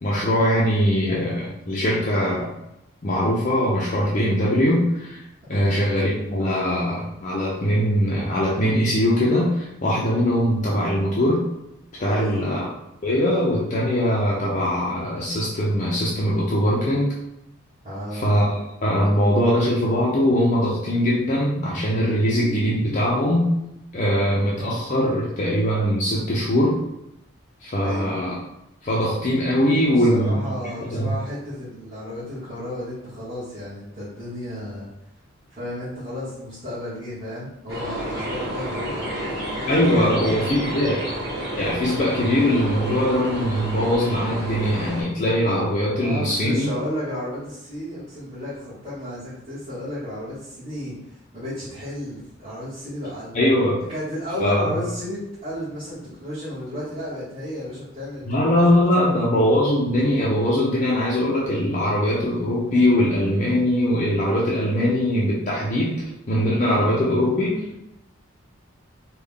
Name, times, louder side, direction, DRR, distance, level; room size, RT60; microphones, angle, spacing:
voice 1, 0.0-2.5 3.0-5.2 5.5-11.5 12.0-12.7 13.0-17.1 18.1-23.5 23.9-26.8 27.6-28.3 28.8-30.5 30.9-31.1 39.7-41.1 41.5-46.7 53.3-53.8 54.4-54.8 58.3-67.7, equal, 35° left, -5 dB, 0.5 m, -21 dB
voice 2, 12.1-12.5 17.8-18.3 27.7-28.1 29.9-34.9 35.5-39.2 39.8-40.3 46.0-53.4 53.9-58.2 58.5-58.6 65.7-65.9, left 1 dB, 25° right, -14 dB, 1.4 m, -33 dB
sound 1, 37.7-45.0, equal, 55° right, 1.3 m, -30 dB
3.4 x 2.3 x 3.6 m, 0.85 s
head